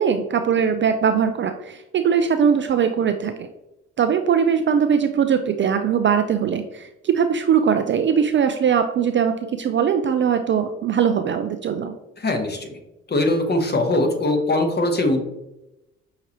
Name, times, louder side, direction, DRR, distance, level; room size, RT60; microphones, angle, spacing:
voice 1, 0.0-3.5 4.0-11.9, right 7 dB, 35° right, 7 dB, 0.4 m, -20 dB
voice 2, 12.2-12.8 13.1-15.2, left 2 dB, 30° left, 5 dB, 1.0 m, -21 dB
5.7 x 2.8 x 2.9 m, 0.94 s
hypercardioid pair, 50°, 36 cm